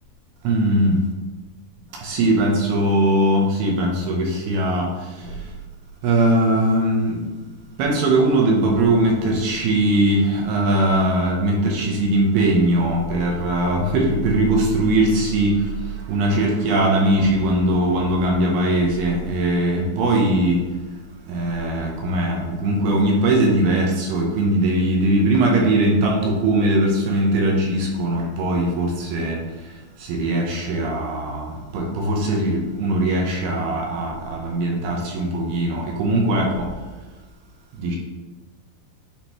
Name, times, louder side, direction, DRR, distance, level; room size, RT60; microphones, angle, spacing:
voice 1, 0.4-1.0 1.9-5.5 6.0-7.3 7.8-20.7 21.3-36.7 37.7-38.0, right 1 dB, 75° right, -1 dB, 2.6 m, -20 dB
10.5 x 3.6 x 3.0 m, 1.2 s
omnidirectional pair, 5.0 m